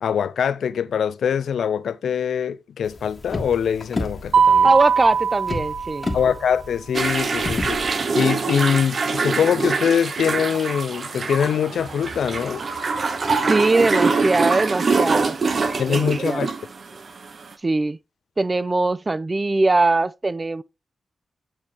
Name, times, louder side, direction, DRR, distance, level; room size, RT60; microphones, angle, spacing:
voice 1, 0.0-4.7 6.1-12.6 15.8-16.5, left 8 dB, 85° left, 0.4 m, -23 dB
sound 1, 2.8-7.9, left 2 dB, 40° left, 1.5 m, -31 dB
Mallet percussion, 4.3-6.4, right 6 dB, 85° right, 0.6 m, -20 dB
voice 2, 4.6-6.1 13.4-15.6 15.9-16.5 17.6-18.0 18.4-20.6, right 2 dB, 35° right, 0.5 m, -21 dB
sound 2, 6.9-17.5, right 4 dB, 60° right, 0.9 m, -24 dB
8.5 x 4.4 x 2.9 m
cardioid pair, 55°, 0 cm